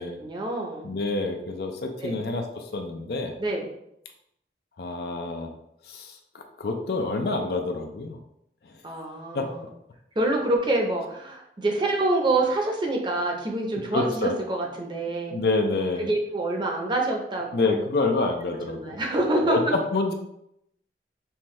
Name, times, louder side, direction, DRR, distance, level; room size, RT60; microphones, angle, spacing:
voice 1, 0.0-0.9 2.0-2.3 3.4-3.7 8.8-9.7 10.2-15.4 16.0-18.1 18.7-19.7, right 2 dB, 25° right, 1 dB, 0.6 m, -26 dB
voice 2, 0.8-3.3 4.8-5.5 5.9-8.2 9.3-9.5 13.9-14.3 15.3-16.1 17.5-19.0 19.5-20.1, left 3 dB, 65° left, 4 dB, 0.5 m, -27 dB
5.6 x 2.3 x 3.1 m, 0.79 s
head